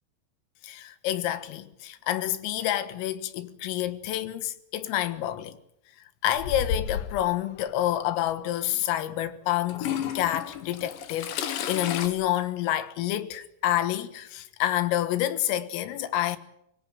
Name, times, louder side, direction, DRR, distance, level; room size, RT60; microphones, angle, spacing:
voice 1, 0.6-5.6 6.2-9.9 10.2-16.4, left 12 dB, 85° left, 4.0 m, -28 dB
Toilet flush / Trickle dribble, 6.3-7.2 8.3-8.4 9.7-12.1, left 9 dB, 65° left, 3.7 m, -32 dB
24.0 x 17.0 x 9.1 m
omnidirectional pair, 5.9 m